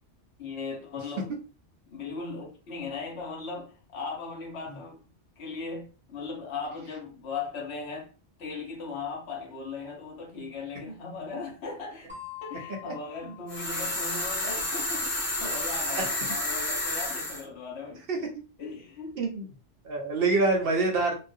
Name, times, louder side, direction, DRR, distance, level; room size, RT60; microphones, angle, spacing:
voice 1, 0.4-1.3 1.9-5.0 5.4-8.1 8.4-18.1 18.6-19.2, left 4 dB, 70° left, 1.0 m, -38 dB
sound 1, 12.1-14.6, left 11 dB, 10° right, 0.3 m, -46 dB
sound 2, 13.5-17.4, left 1 dB, 35° left, 0.6 m, -30 dB
voice 2, 19.2-19.5 19.8-21.1, right 3 dB, 65° right, 0.7 m, -26 dB
2.4 x 2.1 x 2.5 m
omnidirectional pair, 1.2 m